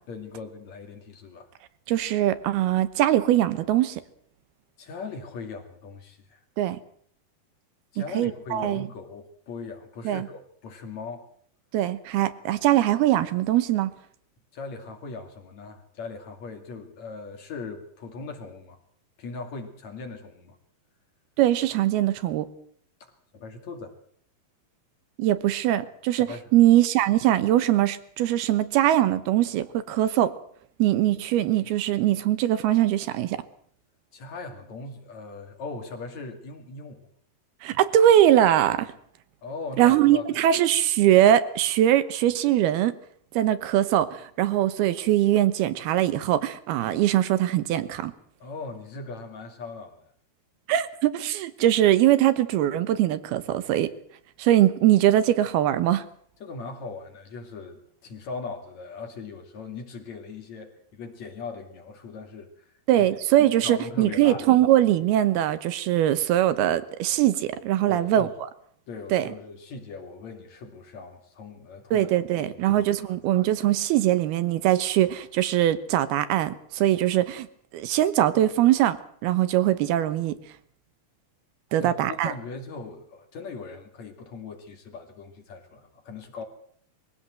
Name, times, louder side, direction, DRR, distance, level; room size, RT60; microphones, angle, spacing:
voice 1, 0.1-1.5 4.8-6.4 7.9-11.3 14.5-18.8 19.2-20.6 23.0-24.0 26.2-26.5 34.1-37.1 39.4-40.3 48.4-50.1 56.4-62.7 63.6-64.5 67.9-68.3 68.9-72.1 72.4-73.2 81.8-86.4, left 4 dB, 50° left, 5 dB, 3.3 m, -39 dB
voice 2, 1.9-4.0 6.6-6.8 8.1-8.9 10.0-10.3 11.7-13.9 21.4-22.5 25.2-30.3 30.8-33.4 37.6-38.9 39.8-42.9 43.3-48.1 50.7-53.9 54.4-56.0 62.9-68.3 69.1-69.3 71.9-77.5 77.7-80.4 81.7-82.3, right 12 dB, 80° right, 14 dB, 3.0 m, -22 dB
22.5 x 16.5 x 7.7 m, 0.63 s
omnidirectional pair, 4.5 m